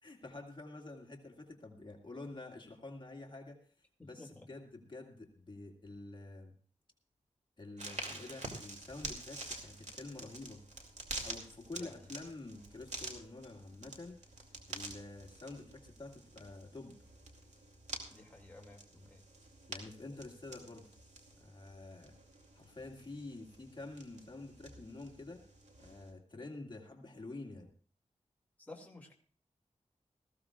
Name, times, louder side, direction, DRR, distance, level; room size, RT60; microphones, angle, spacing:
voice 1, 0.0-3.6 4.0-6.5 7.6-10.6 11.2-14.2 14.7-17.0 19.7-20.9 21.4-22.2 22.5-25.4 25.8-27.7, left 2 dB, 40° left, 1 dB, 2.2 m, -48 dB
voice 2, 4.0-4.5 11.7-11.9 18.1-19.2 28.6-29.1, left 2 dB, 15° left, 0 dB, 2.3 m, -53 dB
sound 1, 7.8-26.1, right 2 dB, 65° right, 2.6 m, -48 dB
20.0 x 15.0 x 2.4 m, 0.41 s
wide cardioid pair, 90°, 13 cm